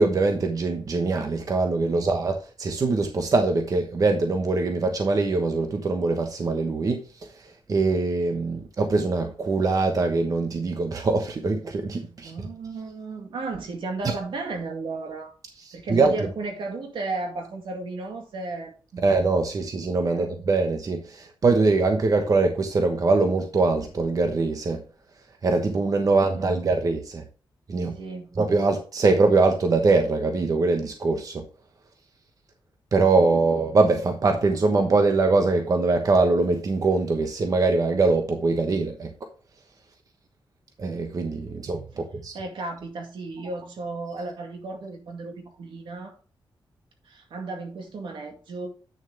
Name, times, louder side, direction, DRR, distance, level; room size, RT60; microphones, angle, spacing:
voice 1, 0.0-7.0 7.7-12.3 14.0-14.1 15.7-16.1 19.0-24.8 25.4-27.2 27.7-28.0 28.4-31.4 32.9-39.1 40.8-42.3, right 3 dB, 45° right, 1.1 m, -23 dB
voice 2, 12.1-15.3 15.7-19.1 20.0-20.3 26.0-26.6 27.7-28.4 41.4-42.1 42.3-46.1 47.1-48.7, right 3 dB, 80° right, 2.2 m, -35 dB
9.2 x 6.4 x 3.4 m
wide cardioid pair, 115°, 8 cm